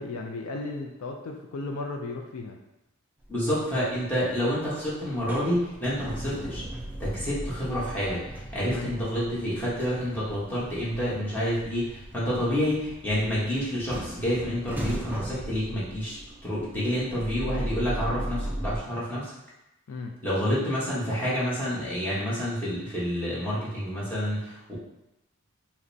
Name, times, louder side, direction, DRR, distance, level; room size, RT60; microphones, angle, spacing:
voice 1, 0.0-2.6 8.7-8.9 19.9-20.2, left 3 dB, 70° left, 3 dB, 0.4 m, -35 dB
sound 1, 3.2-3.8 4.1-18.8, right 1 dB, 10° right, 0.4 m, -37 dB
voice 2, 3.3-6.6 7.0-8.2 8.5-19.3 20.2-24.7, equal, 10° left, -9 dB, 1.1 m, -28 dB
5.0 x 2.1 x 2.7 m, 0.91 s
head